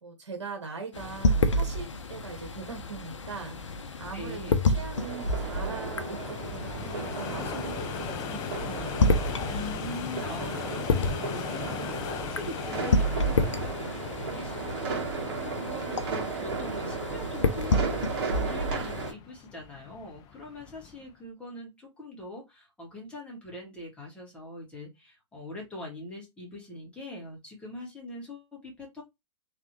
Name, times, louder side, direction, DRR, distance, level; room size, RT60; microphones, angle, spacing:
voice 1, 0.0-9.3, right 4 dB, 75° right, 1.7 m, -41 dB
sound 1, 0.9-19.1, left 2 dB, 80° left, 0.6 m, -30 dB
sound 2, 2.8-21.1, left 9 dB, 25° left, 0.4 m, -41 dB
voice 2, 4.1-4.6 9.5-29.0, left 1 dB, 5° left, 1.9 m, -42 dB
sound 3, 4.9-19.1, right 4 dB, 50° right, 1.6 m, -35 dB
3.2 x 3.2 x 3.1 m
figure-of-eight pair, 115°, 15 cm